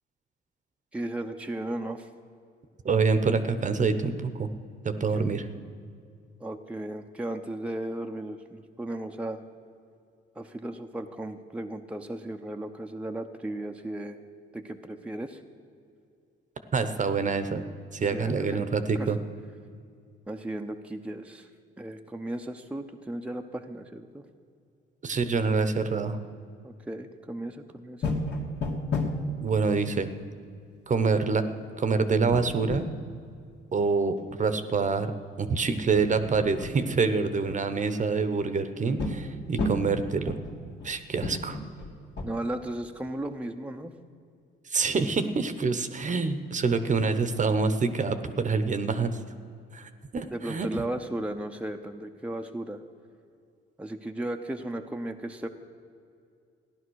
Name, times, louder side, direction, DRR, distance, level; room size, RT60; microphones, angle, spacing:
voice 1, 0.9-2.1 5.1-5.4 6.4-9.4 10.3-14.2 14.5-15.4 18.1-18.6 19.0-19.1 20.3-21.5 21.8-24.2 26.6-28.2 42.2-43.9 50.3-52.8 53.8-55.5, right 1 dB, 5° right, 3 dB, 0.8 m, -35 dB
voice 2, 2.8-4.5 4.8-5.5 16.7-17.6 17.9-19.2 25.0-26.2 29.4-30.1 30.9-31.4 31.8-32.9 33.7-35.1 35.4-40.4 40.8-41.6 44.7-49.2 49.7-50.7, right 4 dB, 40° right, 10 dB, 1.0 m, -26 dB
sound 1, 28.0-29.2 29.5-29.6 29.9-30.0 32.3-32.9 35.4-35.7 36.2-36.8 39.0-39.3 39.6-39.9 40.3-40.9 41.2-42.3, left 2 dB, 60° left, 2.2 m, -32 dB
14.5 x 10.5 x 6.4 m, 2.3 s
cardioid pair, 90°, 20 cm